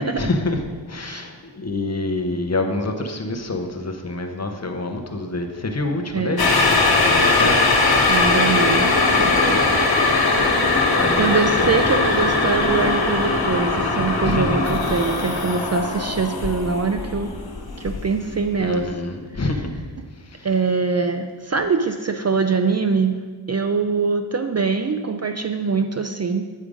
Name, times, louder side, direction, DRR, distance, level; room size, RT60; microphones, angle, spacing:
voice 1, 0.0-7.7 10.7-11.3 11.5-11.7 14.2-14.8 18.6-19.8 20.2-20.5, left 2 dB, 35° left, 5 dB, 0.7 m, -27 dB
voice 2, 6.1-6.5 8.1-9.6 11.2-17.3 17.8-18.9 19.3-19.4 20.4-23.2 23.5-26.5, right 5 dB, 35° right, 6 dB, 0.4 m, -23 dB
sound 1, 6.4-18.5 18.8-18.9, left 3 dB, 55° left, 1.1 m, -20 dB
8.4 x 5.0 x 5.0 m, 1.5 s
wide cardioid pair, 105°, 46 cm